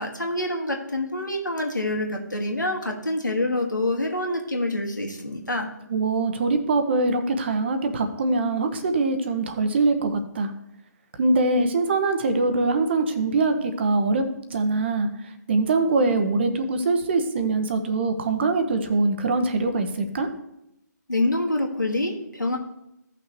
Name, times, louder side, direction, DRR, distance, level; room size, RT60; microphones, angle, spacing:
voice 1, 0.0-5.7 21.1-22.6, left 1 dB, 80° left, 2 dB, 2.1 m, -26 dB
voice 2, 5.9-10.5 11.2-14.2 14.5-20.3, right 3 dB, 35° right, 8 dB, 1.0 m, -23 dB
15.5 x 6.0 x 3.2 m, 0.83 s
figure-of-eight pair, 140°, 10 cm